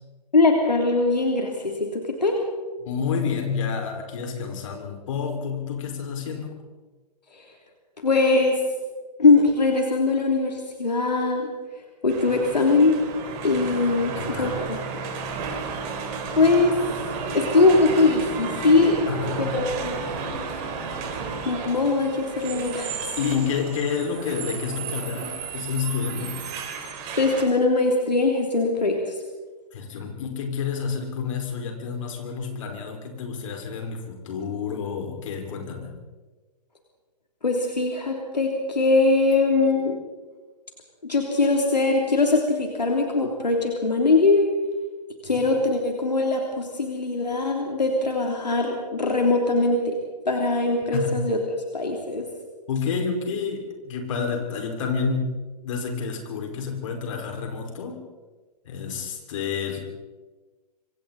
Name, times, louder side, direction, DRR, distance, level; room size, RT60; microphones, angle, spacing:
voice 1, 0.3-2.4 7.3-7.4 8.0-8.5 9.2-11.5 12.0-13.0 13.4-14.5 16.4-16.8 17.3-18.9 19.4-20.1 21.4-23.1 27.1-29.1 37.4-40.0 41.0-44.5 45.2-50.0 50.2-52.3, left 3 dB, 75° left, 1 dB, 3.2 m, -21 dB
voice 2, 2.8-6.6 14.2-14.7 19.1-19.6 23.2-26.3 29.7-35.9 50.9-51.2 52.7-58.0 58.7-59.8, left 6 dB, 50° left, 2 dB, 5.2 m, -29 dB
sound 1, 12.1-27.4, right 5 dB, 35° right, 4.4 m, -33 dB
26.0 x 25.0 x 4.2 m, 1.3 s
figure-of-eight pair, 115°, 21 cm